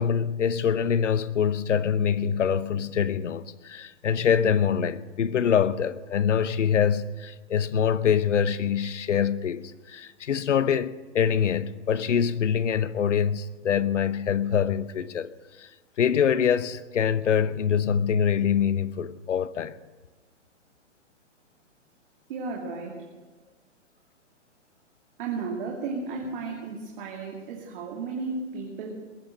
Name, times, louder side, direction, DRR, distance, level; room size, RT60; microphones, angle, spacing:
voice 1, 0.0-15.3 15.6-15.7 16.0-19.8, left 7 dB, 80° left, 0.9 m, -24 dB
voice 2, 22.3-23.0 25.2-28.9, right 4 dB, 45° right, 2.7 m, -34 dB
20.5 x 9.1 x 6.4 m
hypercardioid pair, 135°, 36 cm